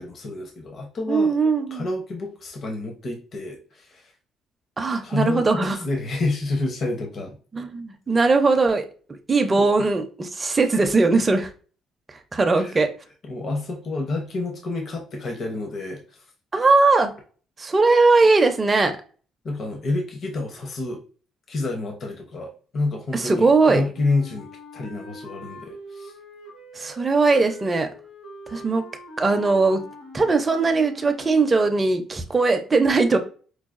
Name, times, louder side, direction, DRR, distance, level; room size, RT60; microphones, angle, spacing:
voice 1, 0.0-1.3 1.7-4.0 5.0-7.3 9.6-9.7 12.6-12.7 13.3-16.0 19.4-21.0 21.5-24.5 24.7-26.1, left 2 dB, 40° left, 0.7 m, -29 dB
voice 2, 1.1-1.9 4.8-5.8 7.5-8.8 9.3-11.5 12.3-12.9 16.5-17.1 17.6-19.0 23.1-23.8 26.8-27.9 28.5-28.8 29.2-29.8 30.1-33.2, right 3 dB, 20° right, 0.5 m, -19 dB
Wind instrument woodwind instrument, 23.9-31.6, left 1 dB, 65° left, 1.3 m, -43 dB
4.6 x 2.3 x 2.4 m
cardioid pair, 140°, 0 cm